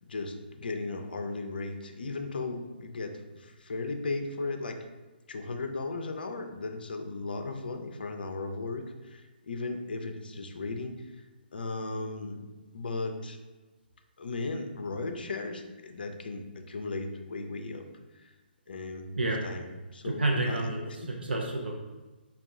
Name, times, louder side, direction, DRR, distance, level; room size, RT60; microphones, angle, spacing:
voice 1, 0.1-4.9 5.3-11.0 11.5-12.5 12.7-13.4 14.2-17.9 18.1-18.3 18.7-19.7 19.9-20.6 20.9-21.1, left 3 dB, 60° left, 6 dB, 0.4 m, -36 dB
voice 2, 20.0-21.7, right 2 dB, 70° right, 0 dB, 0.6 m, -29 dB
4.5 x 2.3 x 3.5 m, 1.2 s
figure-of-eight pair, 130°, 6 cm